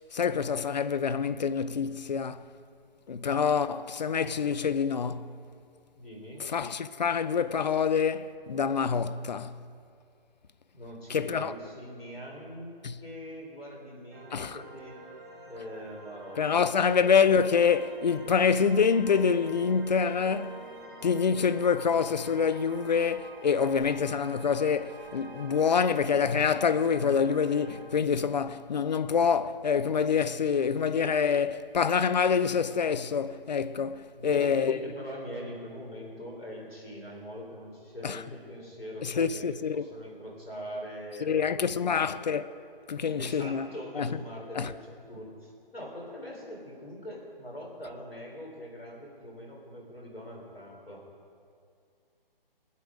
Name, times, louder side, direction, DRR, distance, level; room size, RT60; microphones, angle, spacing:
voice 1, 0.1-2.4 3.1-5.3 6.4-9.6 11.1-11.5 12.8-13.0 14.3-14.6 16.4-20.7 21.0-34.8 38.0-38.2 39.0-39.8 41.2-42.5 42.9-43.7 44.0-44.1 44.5-44.7, left 6 dB, 50° left, 0.4 m, -26 dB
voice 2, 6.0-6.5 10.7-12.7 13.0-15.0 15.4-17.1 34.2-42.2 43.0-51.0, equal, 85° left, 3.7 m, -42 dB
sound 1, 14.1-27.9, right 2 dB, 25° right, 1.3 m, -47 dB
19.5 x 8.2 x 5.0 m
figure-of-eight pair, 145°, 29 cm